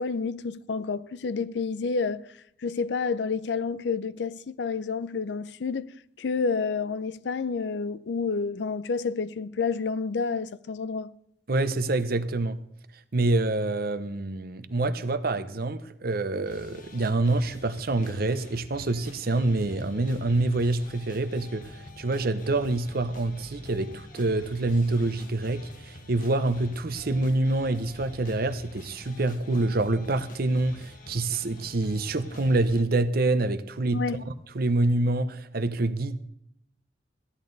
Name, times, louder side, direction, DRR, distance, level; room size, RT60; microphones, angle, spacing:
voice 1, 0.0-2.3 2.6-11.1 33.9-34.2, left 5 dB, 70° left, 0.5 m, -29 dB
voice 2, 11.5-12.6 13.1-34.0 34.5-36.2, right 2 dB, 55° right, 0.8 m, -26 dB
sound 1, 16.5-32.8, left 1 dB, 50° left, 1.3 m, -47 dB
14.0 x 10.5 x 4.0 m
head